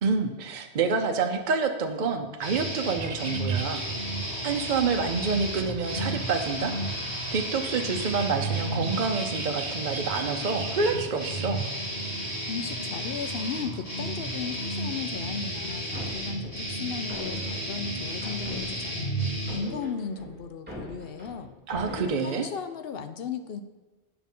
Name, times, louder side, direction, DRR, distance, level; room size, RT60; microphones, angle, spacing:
voice 1, 0.0-3.8 4.4-6.8 7.3-11.6 21.7-22.5, right 5 dB, 50° right, 4 dB, 0.8 m, -28 dB
sound 1, 2.4-19.6, right 1 dB, 90° left, 3.4 m, -32 dB
sound 2, 3.0-15.1, right 5 dB, 80° right, 1.1 m, -43 dB
voice 2, 12.5-21.5 22.2-23.6, left 6 dB, 65° left, 9 dB, 0.9 m, -36 dB
sound 3, 15.7-19.1 19.5-22.1, equal, 10° right, 2.7 m, -42 dB
9.5 x 5.9 x 5.5 m, 1.2 s
omnidirectional pair, 1.1 m